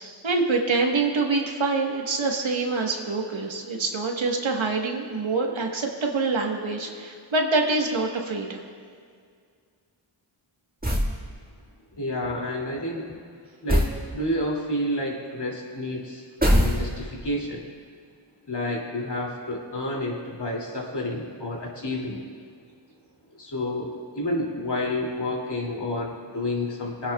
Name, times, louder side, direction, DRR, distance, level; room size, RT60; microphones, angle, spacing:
voice 1, 0.0-8.6, right 3 dB, 70° right, 2 dB, 1.4 m, -25 dB
sound 1, 10.8-11.2 13.7-14.0 16.4-17.2, equal, 20° right, 1.8 m, -21 dB
voice 2, 12.0-13.1 13.6-13.9 14.1-16.2 16.6-17.6 18.5-22.2 23.3-23.9 24.1-27.1, left 1 dB, 55° left, -2 dB, 2.7 m, -29 dB
21.5 x 9.9 x 2.3 m, 2.1 s
cardioid pair, 50°, 48 cm